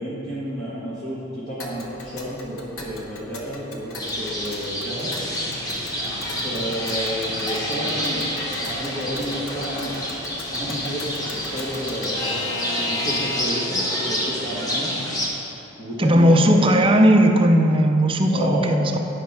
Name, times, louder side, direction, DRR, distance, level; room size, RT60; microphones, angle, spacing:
voice 1, 0.0-5.1 6.4-9.9 10.5-12.3 12.8-15.0 15.8-16.7 18.3-18.8, equal, 35° left, -10 dB, 1.6 m, -31 dB
Alarm / Clock, 1.6-13.8, left 2 dB, 75° left, 1.0 m, -36 dB
sound 1, 4.0-15.3, equal, 15° left, 1.0 m, -28 dB
voice 2, 16.0-19.0, equal, 25° right, 4 dB, 0.5 m, -16 dB
9.9 x 5.1 x 5.8 m, 3.0 s
head